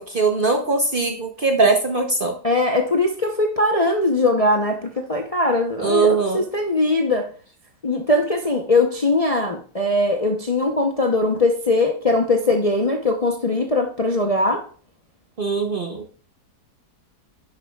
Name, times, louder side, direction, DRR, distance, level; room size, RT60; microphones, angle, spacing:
voice 1, 0.0-2.3 5.8-6.4 15.4-16.0, right 4 dB, 40° right, 0.8 m, -20 dB
voice 2, 2.4-7.3 7.8-14.6, left 2 dB, 30° left, 0.7 m, -20 dB
10.5 x 7.0 x 2.3 m
omnidirectional pair, 1.7 m